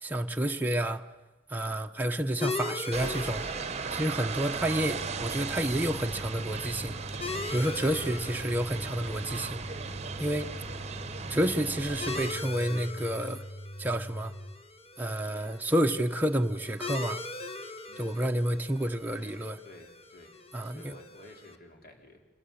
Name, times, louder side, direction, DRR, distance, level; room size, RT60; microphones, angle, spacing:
voice 1, 0.0-1.0 1.5-3.5 3.9-7.0 7.5-9.6 10.2-10.5 11.3-13.4 13.8-14.3 15.0-17.2 18.0-19.6 20.5-21.0, right 1 dB, 10° right, 0.9 m, -29 dB
sound 1, 2.4-21.6, left 3 dB, 30° left, 1.6 m, -42 dB
sound 2, 2.9-12.3, right 5 dB, 35° right, 1.0 m, -37 dB
sound 3, 4.5-14.5, equal, 75° left, 3.0 m, -43 dB
voice 2, 17.9-18.3 19.1-20.3 20.6-22.2, left 1 dB, 50° left, 4.3 m, -52 dB
27.0 x 21.0 x 8.6 m
head